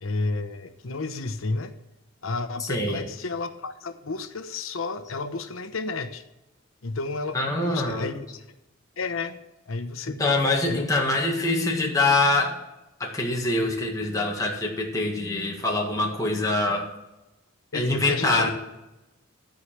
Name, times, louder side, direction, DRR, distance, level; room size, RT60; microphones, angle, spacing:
voice 1, 0.0-1.7 2.2-6.2 6.8-8.4 9.0-9.4 9.7-10.2 10.7-10.9 17.7-18.5, left 3 dB, 80° left, 9 dB, 0.9 m, -31 dB
voice 2, 2.7-3.0 7.3-8.1 10.2-12.6 13.0-16.9 17.7-18.5, left 2 dB, 15° left, -2 dB, 1.7 m, -24 dB
13.0 x 4.8 x 7.3 m, 0.97 s
head